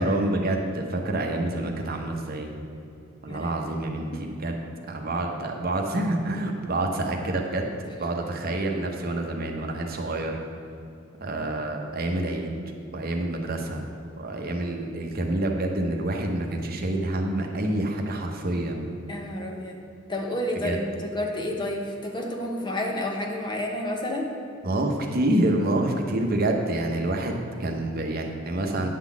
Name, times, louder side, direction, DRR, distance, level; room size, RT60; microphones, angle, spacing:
voice 1, 0.0-2.5 3.2-4.1 4.4-4.6 4.9-7.6 8.0-10.4 11.2-12.5 12.9-13.8 14.2-18.9 20.6-20.8 24.6-28.9, right 1 dB, 50° right, 3 dB, 0.8 m, -27 dB
voice 2, 19.1-19.8 20.1-24.3, left 1 dB, 25° left, 1 dB, 0.9 m, -30 dB
9.4 x 3.9 x 7.2 m, 2.6 s
head